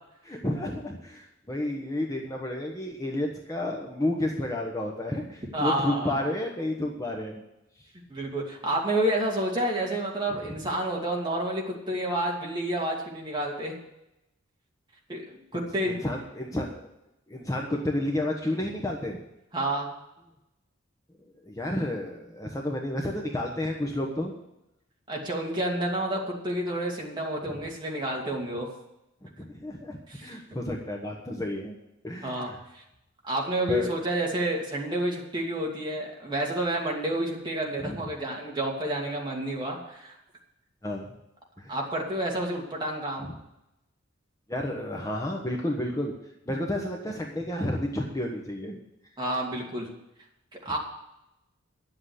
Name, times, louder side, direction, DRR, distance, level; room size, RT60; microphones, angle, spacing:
voice 1, 0.2-7.4 15.5-16.9 17.3-19.2 21.4-24.3 27.5-27.6 29.2-31.8 32.0-32.6 33.7-33.9 37.8-38.0 40.8-41.0 41.6-41.8 44.5-46.1 46.5-48.8, left 1 dB, 15° left, 0 dB, 1.1 m, -31 dB
voice 2, 5.5-6.1 8.1-13.8 15.1-16.0 19.5-19.9 25.1-28.7 30.1-30.3 32.2-32.8 33.2-40.1 41.7-43.3 49.2-49.9 50.6-50.8, right 1 dB, 20° right, -2 dB, 2.6 m, -29 dB
11.0 x 7.8 x 8.2 m, 0.88 s
head